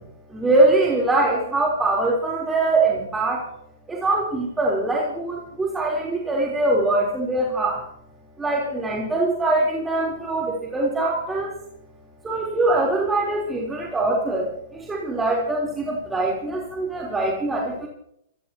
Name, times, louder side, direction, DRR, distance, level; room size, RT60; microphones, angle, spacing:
voice 1, 0.3-3.5 3.9-7.8 8.4-11.5 12.2-14.5 14.7-17.9, right 2 dB, 10° right, -3 dB, 3.6 m, -23 dB
27.0 x 15.5 x 2.9 m, 0.74 s
hypercardioid pair, 135°, 0 cm